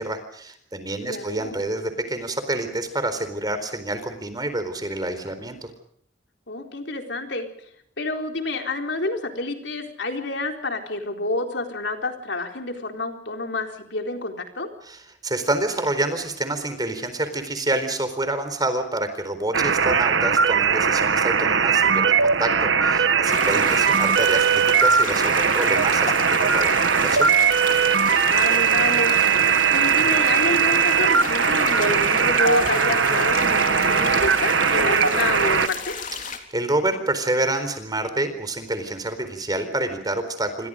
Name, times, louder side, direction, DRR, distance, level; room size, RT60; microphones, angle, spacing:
voice 1, 0.0-5.7 14.8-27.3 36.1-40.7, right 2 dB, 20° right, 10 dB, 4.1 m, -28 dB
voice 2, 1.0-1.6 6.5-7.5 8.0-14.7 23.5-23.7 28.2-29.1 29.7-35.9, left 2 dB, 65° left, 4 dB, 4.2 m, -28 dB
sound 1, 19.5-35.7, right 6 dB, 80° right, 1.4 m, -19 dB
sound 2, 23.2-36.4, left 6 dB, 45° left, 3.6 m, -33 dB
29.0 x 25.5 x 5.2 m, 0.63 s
head